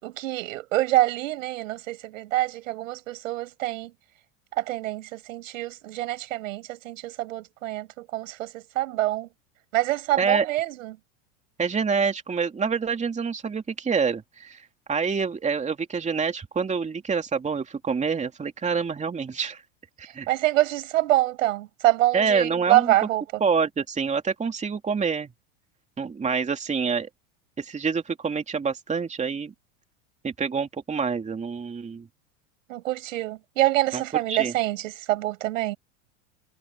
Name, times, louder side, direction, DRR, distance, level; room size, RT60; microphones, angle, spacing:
voice 1, 0.0-3.9 4.5-9.3 9.7-11.0 20.3-23.2 32.7-35.8, right 16 dB, 80° right, 5.9 m, -26 dB
voice 2, 11.6-19.6 20.0-20.3 22.1-22.9 23.4-25.3 26.0-27.1 27.6-29.5 30.2-32.1 33.9-34.0 34.3-34.5, right 5 dB, 20° right, 2.7 m, -27 dB
supercardioid pair, 110°, 39 cm